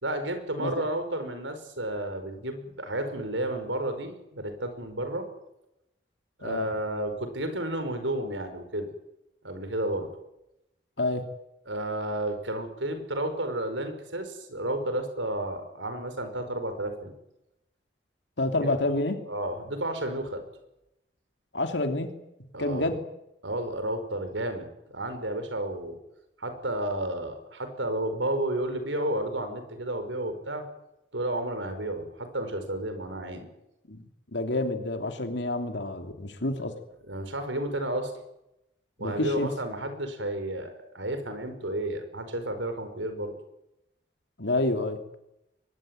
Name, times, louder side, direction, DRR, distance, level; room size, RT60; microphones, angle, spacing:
voice 1, 0.0-5.3 6.4-8.9 9.4-10.1 11.7-17.1 18.9-20.4 22.5-22.9 23.4-26.0 26.4-30.7 31.1-33.5 37.1-38.1 39.0-43.3, right 1 dB, 80° right, 8 dB, 5.4 m, -32 dB
voice 2, 18.4-19.2 21.5-22.1 22.6-23.0 33.9-34.0 34.3-36.7 39.0-39.5 44.4-45.0, left 2 dB, 70° left, 6 dB, 3.0 m, -28 dB
23.5 x 21.0 x 9.2 m, 0.87 s
head